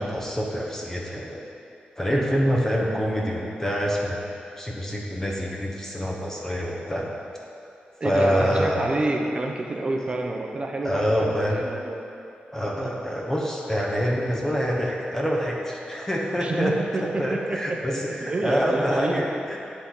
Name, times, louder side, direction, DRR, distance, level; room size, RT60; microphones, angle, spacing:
voice 1, 0.0-1.4 2.0-4.2 4.6-7.1 8.0-8.9 10.8-11.6 12.5-16.7 17.0-19.6, equal, 15° left, -2 dB, 0.9 m, -26 dB
voice 2, 8.0-12.0 12.8-12.9 16.4-19.3, right 2 dB, 35° right, 1 dB, 0.7 m, -28 dB
10.5 x 4.3 x 3.8 m, 2.6 s
wide cardioid pair, 120°, 3 cm